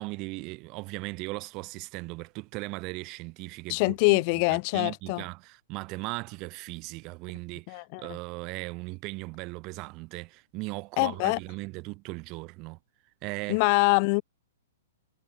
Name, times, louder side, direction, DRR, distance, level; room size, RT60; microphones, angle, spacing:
voice 1, 0.0-4.2 4.5-12.8 13.2-13.6, right 25 dB, 35° right, 3.8 m, -38 dB
voice 2, 3.7-5.2 7.7-8.0 11.0-11.4 13.5-14.2, left 34 dB, 40° left, 7.0 m, -24 dB
hypercardioid pair, 145°, 0 cm